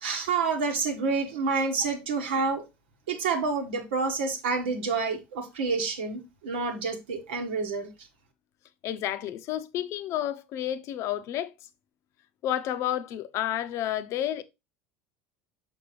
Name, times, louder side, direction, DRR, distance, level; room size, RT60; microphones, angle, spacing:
voice 1, 0.0-2.6 3.1-8.1, right 4 dB, 85° right, 1.3 m, -28 dB
voice 2, 8.8-11.5 12.4-14.4, left 11 dB, 55° left, 0.6 m, -30 dB
5.8 x 5.3 x 3.1 m
hypercardioid pair, 85°, 6 cm